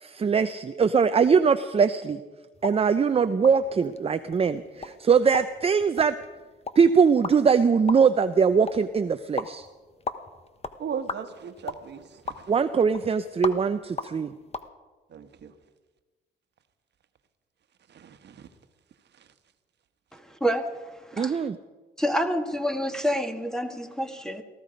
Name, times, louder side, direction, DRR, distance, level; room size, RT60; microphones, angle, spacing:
voice 1, 0.0-2.2 2.6-6.1 6.8-9.7 12.5-14.3 21.2-21.6, right 6 dB, 30° right, 0.6 m, -22 dB
sound 1, 2.5-14.7, left 4 dB, 30° left, 1.1 m, -39 dB
voice 2, 10.8-12.5 15.1-15.5 17.9-18.5 19.2-19.3, right 7 dB, 60° right, 1.3 m, -38 dB
voice 3, 20.1-21.5 22.0-24.4, equal, 5° left, 1.7 m, -28 dB
18.5 x 14.5 x 5.2 m
cardioid pair, 90°, 20 cm